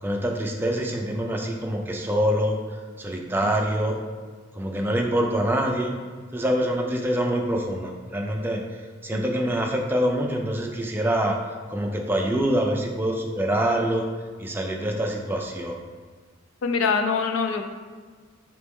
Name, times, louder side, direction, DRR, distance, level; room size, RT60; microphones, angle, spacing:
voice 1, 0.0-2.6 3.0-3.9 4.5-5.9 6.3-11.3 11.7-14.0 14.4-15.8, right 1 dB, 10° right, 1 dB, 0.3 m, -25 dB
voice 2, 16.6-17.6, left 5 dB, 80° left, 6 dB, 0.4 m, -24 dB
4.2 x 3.1 x 3.5 m, 1.5 s
head